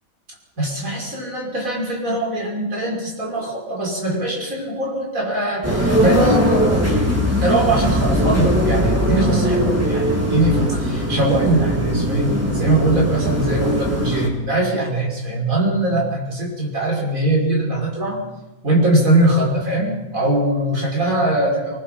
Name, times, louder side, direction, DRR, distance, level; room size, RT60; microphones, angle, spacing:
voice 1, 0.6-6.9 7.4-18.2 18.6-21.8, right 1 dB, 75° right, -2 dB, 6.3 m, -21 dB
sound 1, 5.6-14.3, equal, 10° right, 4.0 m, -20 dB
24.0 x 19.5 x 5.7 m, 1.0 s
omnidirectional pair, 1.4 m